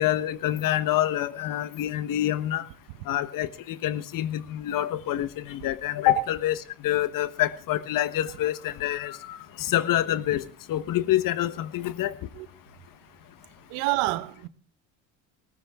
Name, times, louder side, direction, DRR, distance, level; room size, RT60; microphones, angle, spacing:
voice 1, 0.0-2.6 3.1-10.4 10.7-12.1, left 13 dB, 50° left, 1.3 m, -27 dB
voice 2, 13.7-14.5, right 20 dB, 70° right, 1.1 m, -27 dB
19.0 x 15.0 x 3.7 m
hypercardioid pair, 80°, 41 cm